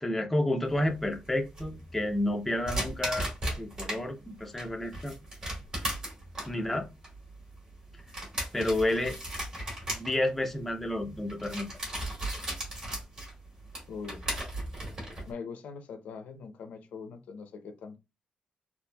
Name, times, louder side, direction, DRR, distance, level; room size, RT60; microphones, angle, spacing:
voice 1, 0.0-3.3 3.6-5.2 6.4-6.9 8.5-9.2 9.9-11.7, left 1 dB, 5° left, 0.4 m, -30 dB
sound 1, 0.7-4.0 4.4-15.3, right 1 dB, 35° right, 2.0 m, -36 dB
voice 2, 6.6-6.9 13.9-14.2 15.2-18.0, left 5 dB, 85° left, 0.6 m, -42 dB
4.0 x 2.4 x 2.2 m
wide cardioid pair, 175°, 3 cm